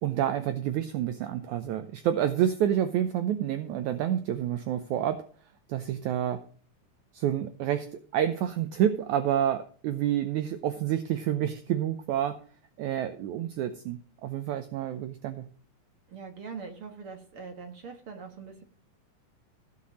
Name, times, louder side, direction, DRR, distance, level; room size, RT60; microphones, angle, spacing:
voice 1, 0.0-5.2 5.7-6.4 7.1-12.4 12.8-15.5, right 10 dB, 75° right, 9 dB, 2.0 m, -28 dB
voice 2, 16.1-18.6, right 5 dB, 50° right, 5 dB, 1.9 m, -42 dB
16.0 x 5.7 x 6.2 m, 0.42 s
omnidirectional pair, 3.9 m